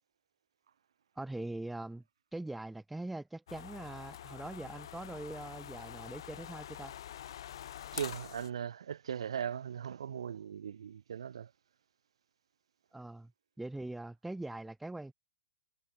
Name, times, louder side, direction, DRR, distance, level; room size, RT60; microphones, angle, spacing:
voice 1, 1.2-2.0 2.3-6.9 12.9-13.3 13.6-15.1, right 2 dB, 5° right, 0.6 m, -42 dB
sound 1, 3.5-8.5, left 11 dB, 60° left, 0.7 m, -46 dB
voice 2, 7.9-11.5, right 8 dB, 80° right, 3.5 m, -39 dB
hypercardioid pair, 165°, 3 cm